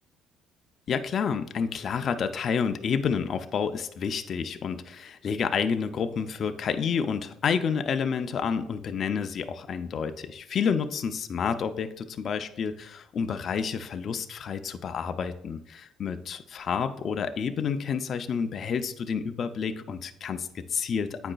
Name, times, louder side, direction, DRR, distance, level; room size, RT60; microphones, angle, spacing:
voice 1, 0.9-21.3, left 6 dB, 40° left, 8 dB, 0.4 m, -29 dB
8.5 x 4.9 x 2.2 m, 0.74 s
cardioid pair, 155°, 0 cm